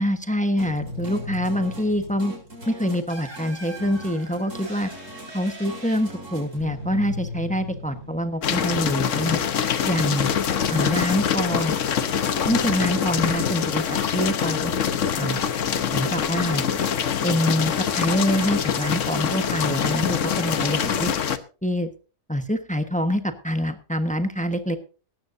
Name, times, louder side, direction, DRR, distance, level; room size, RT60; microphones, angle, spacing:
voice 1, 0.0-2.3 2.7-4.9 5.3-9.4 9.9-10.3 10.7-11.8 12.4-14.7 15.1-15.4 15.9-16.6 17.2-21.1 21.6-21.9 22.3-24.8, equal, 5° left, 8 dB, 1.1 m, -25 dB
sound 1, 0.6-8.8, left 1 dB, 60° right, 5.9 m, -37 dB
sound 2, 8.4-21.4, left 8 dB, 65° left, 1.3 m, -24 dB
18.0 x 14.0 x 2.7 m, 0.36 s
omnidirectional pair, 1.4 m